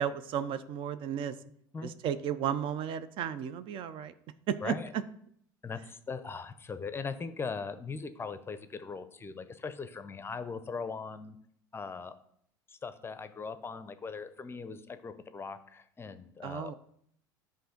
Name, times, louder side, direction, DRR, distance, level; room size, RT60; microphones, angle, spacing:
voice 1, 0.0-1.4 1.8-4.1 4.5-5.0 16.4-16.7, right 8 dB, 50° right, 13 dB, 0.4 m, -33 dB
voice 2, 5.6-11.4 11.7-12.1 12.7-16.7, left 5 dB, 20° left, 11 dB, 0.5 m, -40 dB
7.7 x 2.6 x 5.1 m, 0.68 s
hypercardioid pair, 75°, 11 cm